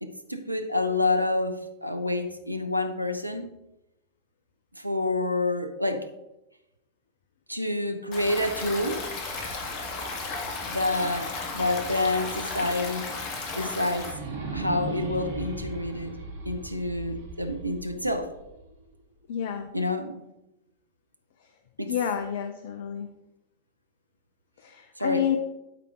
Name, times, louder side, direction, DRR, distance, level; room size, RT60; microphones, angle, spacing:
voice 1, 0.0-3.5 4.8-6.1 7.5-9.1 10.7-13.1 13.5-14.1 14.5-16.2 16.5-18.3 19.7-20.2 21.8-21.9 25.0-25.3, left 2 dB, 90° right, 8 dB, 0.7 m, -28 dB
Stream, 8.1-14.1, left 3 dB, 40° left, 1.8 m, -34 dB
sound 1, 9.0-12.0 12.4-12.5 13.9-18.9, right 3 dB, 65° right, 1.8 m, -39 dB
voice 2, 19.3-19.7 21.9-23.1 24.6-25.4, left 9 dB, 55° left, 8 dB, 0.6 m, -29 dB
12.0 x 5.0 x 3.7 m, 0.92 s
figure-of-eight pair, 90°, 0 cm